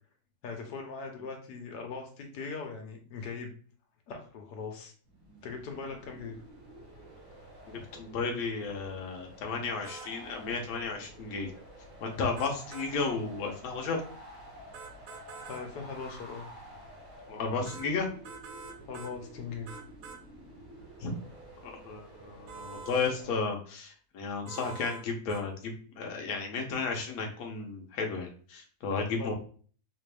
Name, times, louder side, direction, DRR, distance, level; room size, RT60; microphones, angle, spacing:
voice 1, 0.4-3.5 4.1-4.9 5.4-6.4 15.5-16.5 18.9-19.8 24.4-24.5 29.2-29.3, left 4 dB, 85° left, 2 dB, 1.4 m, -40 dB
sound 1, 5.0-23.4, equal, 55° right, 2.1 m, -50 dB
voice 2, 7.7-11.5 12.0-14.0 17.3-18.1 21.0-21.1 21.6-29.3, left 4 dB, 70° left, 2 dB, 1.2 m, -33 dB
sound 2, 9.8-10.1 12.4-12.9 14.7-15.6 17.7-17.9 18.2-19.1 19.7-20.2 22.5-23.1 24.5-25.0 25.3-25.4, right 5 dB, 85° right, 1.2 m, -45 dB
4.1 x 2.4 x 3.3 m, 0.44 s
omnidirectional pair, 1.7 m